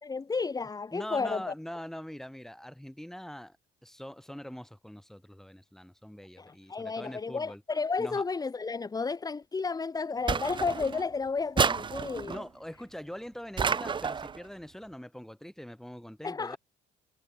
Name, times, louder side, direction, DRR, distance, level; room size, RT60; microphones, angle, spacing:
voice 1, 0.0-1.4 6.4-12.4 16.2-16.6, left 4 dB, 20° left, 1.8 m, -32 dB
voice 2, 0.9-3.6 3.8-7.6 8.0-8.2 12.2-16.6, equal, ahead, 5.0 m, -43 dB
sound 1, 10.3-11.1 11.6-12.4 13.6-14.4, right 6 dB, 30° right, 1.0 m, -29 dB
cardioid pair, 110°, 17 cm